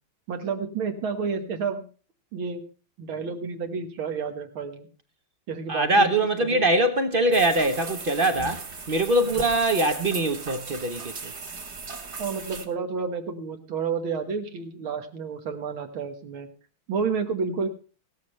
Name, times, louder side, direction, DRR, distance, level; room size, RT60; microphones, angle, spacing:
voice 1, 0.3-1.9 2.3-2.6 3.0-4.9 5.5-6.1 6.4-6.6 9.3-9.5 12.2-16.5 16.9-17.7, right 5 dB, 80° right, 2.1 m, -30 dB
voice 2, 5.7-11.3, right 1 dB, 55° right, 0.5 m, -23 dB
sound 1, 7.3-12.7, right 4 dB, 40° right, 1.2 m, -37 dB
16.5 x 13.5 x 3.1 m
omnidirectional pair, 2.2 m